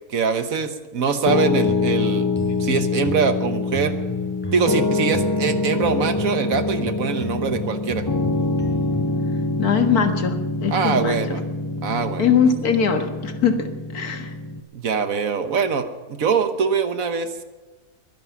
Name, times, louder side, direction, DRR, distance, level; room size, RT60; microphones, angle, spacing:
voice 1, 0.1-2.3 2.6-3.9 4.5-8.1 10.7-11.4 11.8-12.2 14.7-17.4, right 5 dB, 60° right, 10 dB, 1.4 m, -23 dB
Piano, 1.3-14.6, left 3 dB, 35° left, 0.3 m, -25 dB
sound 1, 1.7-9.2, equal, 5° left, 4.2 m, -35 dB
voice 2, 9.6-11.4 12.2-14.4, left 6 dB, 70° left, 6 dB, 2.0 m, -21 dB
22.5 x 11.0 x 6.0 m, 1.2 s
omnidirectional pair, 1.7 m